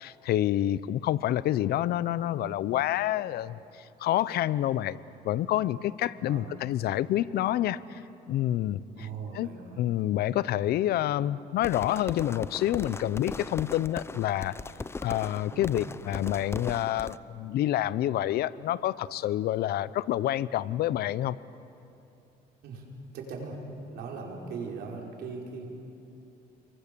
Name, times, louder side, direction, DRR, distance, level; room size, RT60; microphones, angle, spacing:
voice 1, 0.0-5.0 5.2-8.0 8.3-9.1 9.3-9.5 9.8-14.5 15.0-21.4, left 13 dB, 70° left, 17 dB, 0.7 m, -28 dB
voice 2, 8.9-9.8 15.5-15.7 22.6-22.9 23.1-23.6 23.9-25.6, right 5 dB, 75° right, -1 dB, 5.2 m, -39 dB
sound 1, 11.6-17.2, left 3 dB, 15° left, 0.5 m, -39 dB
29.5 x 23.5 x 6.9 m, 2.8 s
cardioid pair, 110°, 17 cm